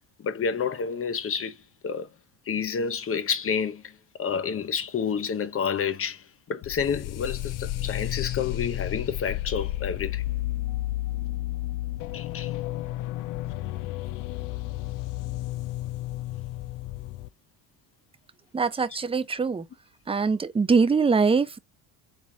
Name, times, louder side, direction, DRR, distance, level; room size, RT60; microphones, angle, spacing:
voice 1, 0.2-1.6 1.8-2.1 2.5-10.2 12.1-12.5, left 6 dB, 30° left, 0.9 m, -29 dB
sound 1, 6.6-17.3, left 16 dB, 45° left, 0.5 m, -32 dB
voice 2, 18.5-19.7 20.1-21.6, right 5 dB, 10° right, 0.6 m, -23 dB
4.1 x 3.4 x 3.6 m
hypercardioid pair, 75°, 46 cm